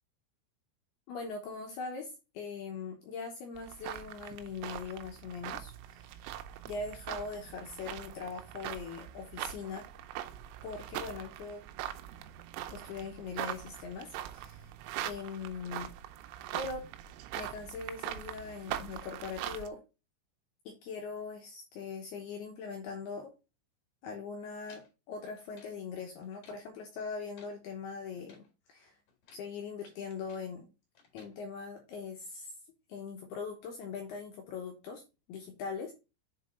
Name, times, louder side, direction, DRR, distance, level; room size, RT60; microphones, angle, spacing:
voice 1, 1.1-6.2 6.7-9.9 10.6-11.6 12.7-14.7 15.0-15.9 16.5-16.8 17.4-19.8 20.7-23.3 24.0-28.4 28.7-28.9 29.3-30.7 31.1-32.5 32.9-35.0 35.3-35.9, left 5 dB, 80° left, 2 dB, 2.3 m, -41 dB
sound 1, 3.6-19.7, right 12 dB, 85° right, 3.2 m, -42 dB
sound 2, 24.6-25.8 26.2-26.7 27.1-27.6 28.1-28.5 29.1-29.5 29.8-30.5 31.0-31.4, left 5 dB, 50° left, 2.4 m, -61 dB
7.1 x 4.1 x 4.3 m, 0.28 s
omnidirectional pair, 5.9 m